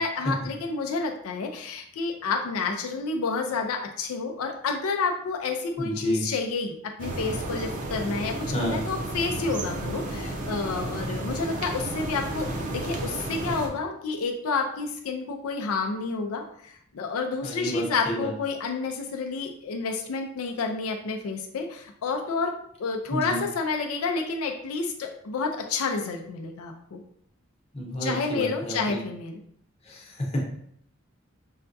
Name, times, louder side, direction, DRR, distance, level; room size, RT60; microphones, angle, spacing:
voice 1, 0.0-8.4 8.7-12.5 12.7-22.5 22.8-27.0 28.0-29.4, left 4 dB, 85° left, 3 dB, 0.4 m, -29 dB
voice 2, 5.8-6.2 8.5-8.8 17.4-18.3 23.1-23.4 27.7-29.0 29.8-30.3, equal, 30° left, -3 dB, 0.8 m, -31 dB
sound 1, 7.0-13.7, right 2 dB, 35° right, 0.5 m, -32 dB
5.5 x 2.2 x 2.6 m, 0.67 s
head